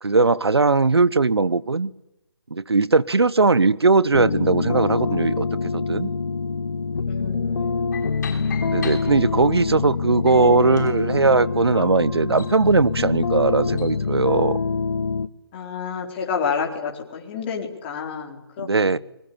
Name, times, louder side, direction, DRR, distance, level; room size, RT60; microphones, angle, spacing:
voice 1, 0.0-1.9 2.5-6.1 8.6-14.6 18.6-19.0, right 3 dB, 85° right, 1.1 m, -19 dB
sound 1, 4.1-15.3, left 4 dB, 65° left, 1.2 m, -25 dB
voice 2, 7.1-8.0 15.5-19.0, left 6 dB, 25° left, 4.3 m, -30 dB
sound 2, 7.9-9.6 10.3-14.0, left 5 dB, 45° left, 8.0 m, -41 dB
30.0 x 21.5 x 8.9 m
figure-of-eight pair, 155°, 13 cm